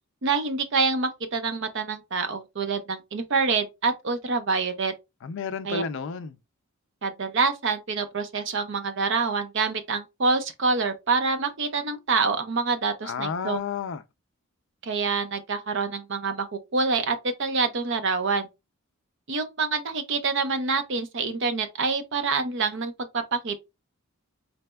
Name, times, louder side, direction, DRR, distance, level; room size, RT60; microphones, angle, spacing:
voice 1, 0.2-4.9 5.6-5.8 7.0-13.6 14.8-18.5 19.3-23.6, right 4 dB, 55° right, 0.6 m, -26 dB
voice 2, 5.2-6.4 13.0-14.0, left 6 dB, 55° left, 0.3 m, -31 dB
4.1 x 3.3 x 2.2 m
head